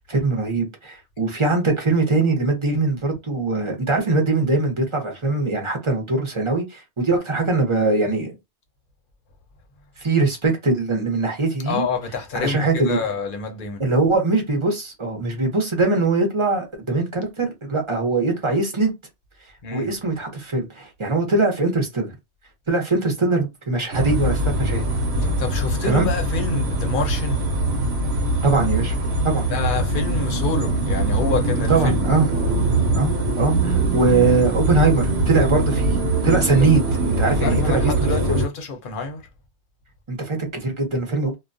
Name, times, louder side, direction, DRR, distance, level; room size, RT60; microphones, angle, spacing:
voice 1, 0.1-8.3 10.0-11.8 12.3-13.0 13.8-18.9 19.7-22.1 22.7-24.8 25.8-26.1 28.4-28.9 29.2-29.5 31.7-32.3 32.9-36.0 36.2-37.9 40.1-41.3, right 3 dB, 30° right, 0.7 m, -21 dB
voice 2, 11.7-13.8 19.6-19.9 25.4-27.5 29.5-32.0 37.4-39.2, left 4 dB, 55° left, 0.8 m, -27 dB
sound 1, 23.9-38.5, right 2 dB, 70° right, 0.9 m, -22 dB
2.3 x 2.2 x 2.5 m
omnidirectional pair, 1.2 m